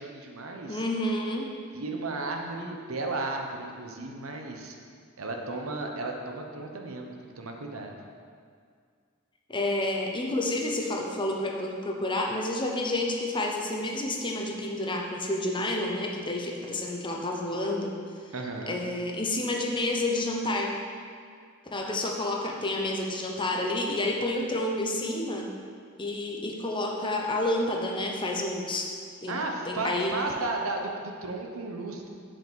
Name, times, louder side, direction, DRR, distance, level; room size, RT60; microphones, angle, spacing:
voice 1, 0.0-0.8 1.7-4.8 5.2-8.0 18.3-18.8 29.3-32.1, right 2 dB, 80° right, 2 dB, 1.0 m, -34 dB
voice 2, 0.7-1.5 9.5-17.9 18.7-20.7 21.6-25.5 26.0-28.9 29.2-29.4 29.7-30.1, left 1 dB, 25° left, 0 dB, 0.9 m, -29 dB
7.2 x 5.1 x 6.9 m, 2.1 s
head